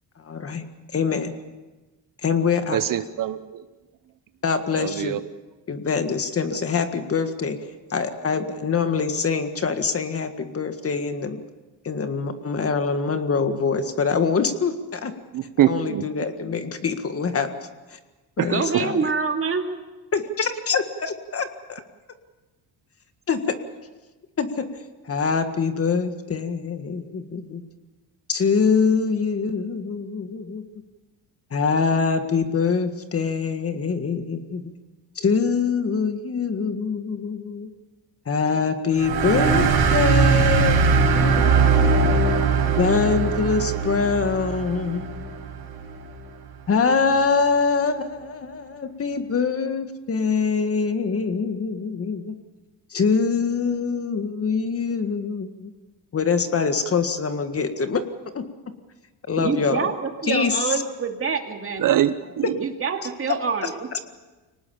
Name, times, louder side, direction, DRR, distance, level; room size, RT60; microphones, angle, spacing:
voice 1, 0.2-0.6 0.9-1.3 2.2-2.8 4.4-5.2 5.7-7.6 7.9-11.4 11.8-15.1 15.7-17.5 17.9-18.0 18.4-19.0 20.1-21.8 23.3-23.4 24.4-24.7 25.0-27.6 28.3-30.6 31.5-34.7 35.2-37.7 38.3-41.9 42.7-45.3 46.7-52.4 52.9-55.7 56.1-58.0 58.3-58.5 59.3-59.9 60.2-60.8, left 5 dB, 35° left, 1.8 m, -24 dB
voice 2, 2.7-3.6 4.8-5.2 15.3-16.0 18.4-18.5 61.8-62.5, right 11 dB, 55° right, 0.8 m, -23 dB
voice 3, 18.5-19.6 59.4-61.8 62.2-62.3 62.6-63.7, right 5 dB, 35° right, 2.5 m, -26 dB
sound 1, 39.0-46.0, right 5 dB, 85° right, 5.9 m, -20 dB
24.0 x 19.0 x 7.1 m
cardioid pair, 110°, 38 cm